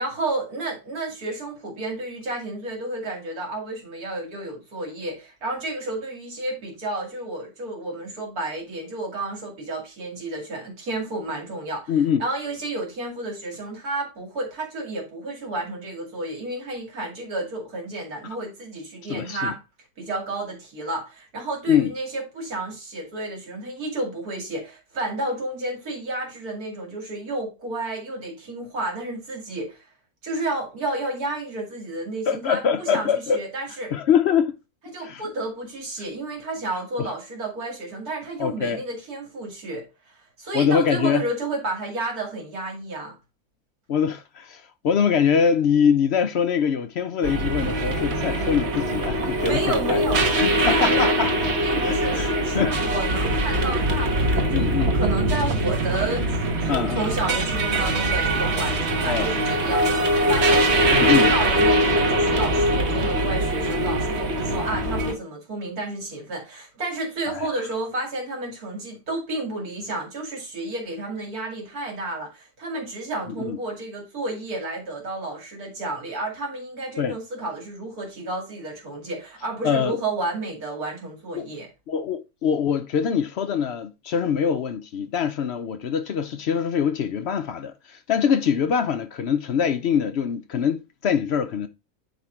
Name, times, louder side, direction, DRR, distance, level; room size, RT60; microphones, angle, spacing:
voice 1, 0.0-19.6 20.0-29.9 30.2-33.9 34.8-43.1 49.4-50.2 50.6-51.1 51.6-81.7, right 2 dB, 85° right, 2.8 m, -31 dB
voice 2, 11.9-12.2 19.1-19.5 21.7-21.9 32.3-33.4 33.9-34.6 35.0-35.2 37.0-37.1 38.4-38.8 40.5-41.2 43.9-50.1 50.4-51.3 51.8-52.8 54.4-55.0 56.7-57.1 59.0-59.3 60.9-61.3 67.3-67.5 73.4-73.6 77.0-77.1 79.6-80.0 81.4-81.5 81.9-91.7, left 7 dB, 60° left, 0.7 m, -23 dB
sound 1, 47.2-65.1, right 1 dB, 50° right, 1.3 m, -22 dB
9.4 x 3.2 x 4.5 m
omnidirectional pair, 1.5 m